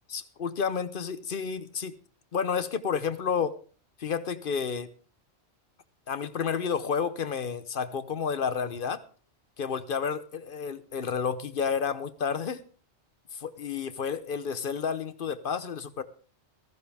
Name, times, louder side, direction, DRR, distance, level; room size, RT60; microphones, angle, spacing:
voice 1, 0.1-1.9 2.3-3.5 4.0-4.9 6.1-9.0 9.6-12.6 13.3-16.0, left 6 dB, 55° left, 0.9 m, -30 dB
15.0 x 14.0 x 3.4 m
omnidirectional pair, 1.1 m